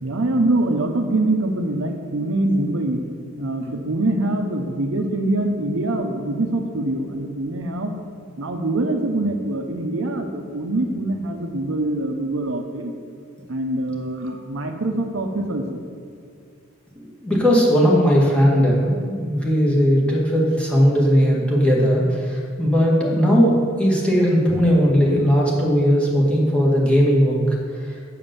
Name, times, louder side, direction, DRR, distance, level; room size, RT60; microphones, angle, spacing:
voice 1, 0.0-3.0 3.4-8.0 8.4-12.9 13.5-15.8, right 2 dB, 70° right, 5 dB, 0.8 m, -24 dB
voice 2, 17.0-27.4, equal, 5° left, -4 dB, 1.9 m, -18 dB
7.2 x 6.7 x 6.8 m, 2.4 s
head